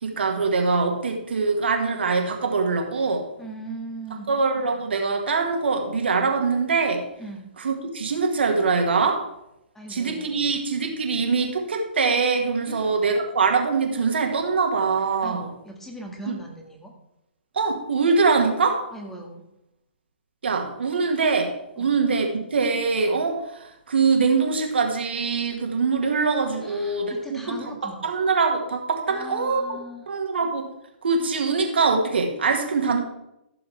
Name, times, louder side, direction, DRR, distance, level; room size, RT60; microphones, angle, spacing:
voice 1, 0.0-3.3 4.3-7.1 7.6-9.3 9.9-15.5 16.3-16.4 17.5-18.8 20.4-29.8 30.1-30.7 31.0-33.0, right 4 dB, 70° right, 3 dB, 1.9 m, -23 dB
voice 2, 3.1-4.3 7.2-7.5 9.7-10.5 12.6-12.9 15.2-16.9 18.9-19.4 21.8-22.0 26.6-28.0 29.1-30.0, right 1 dB, 5° left, 1 dB, 1.8 m, -39 dB
14.0 x 7.0 x 3.4 m, 0.86 s
figure-of-eight pair, 130°, 6 cm